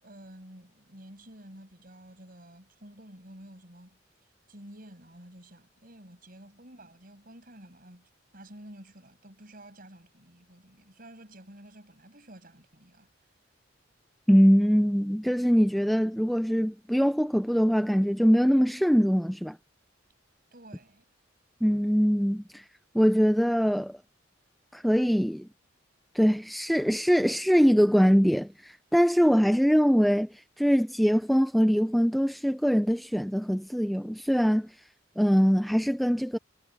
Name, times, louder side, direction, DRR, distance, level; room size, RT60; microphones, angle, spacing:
voice 1, 0.0-4.0 4.5-13.1 20.5-21.0, right 1 dB, 45° right, 7.4 m, -50 dB
voice 2, 14.3-19.6 21.6-22.6 22.9-24.0 24.7-25.5 26.1-34.7 35.2-36.4, equal, ahead, 0.5 m, -23 dB
head